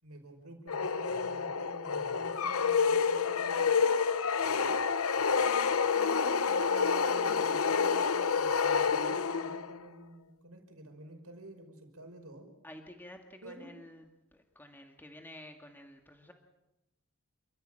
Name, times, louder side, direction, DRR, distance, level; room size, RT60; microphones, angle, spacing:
voice 1, 0.0-4.0 5.9-12.5 13.4-13.7, right 1 dB, 85° right, 4 dB, 5.5 m, -50 dB
sound 1, 0.7-9.8, left 5 dB, 75° left, 0.9 m, -28 dB
voice 2, 4.4-4.8 12.6-14.0 14.3-16.3, left 1 dB, 10° left, 3 dB, 1.9 m, -51 dB
28.5 x 15.5 x 8.9 m, 0.96 s
head